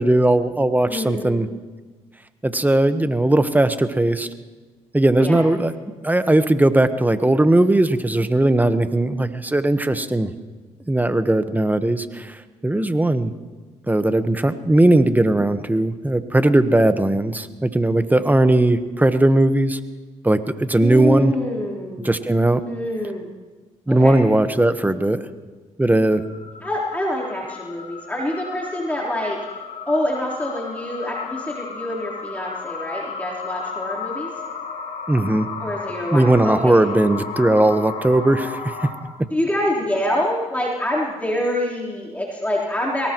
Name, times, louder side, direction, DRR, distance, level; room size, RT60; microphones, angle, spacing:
voice 1, 0.0-1.5 2.4-4.3 4.9-5.7 6.0-10.3 10.9-12.4 12.6-13.3 13.9-19.8 20.2-21.3 22.0-22.6 23.9-25.2 25.8-26.2 35.1-35.5 36.1-38.6, right 1 dB, 10° right, 10 dB, 1.3 m, -18 dB
voice 2, 0.8-1.5 5.2-5.4 20.8-22.1 22.7-23.3 23.9-24.2 26.6-29.4 29.9-34.3 35.6-36.7 39.3-43.1, left 1 dB, 10° left, -5 dB, 4.0 m, -26 dB
sound 1, 26.1-38.9, left 5 dB, 75° left, 4.4 m, -34 dB
23.0 x 19.0 x 3.1 m, 1.3 s
supercardioid pair, 55°, 14 cm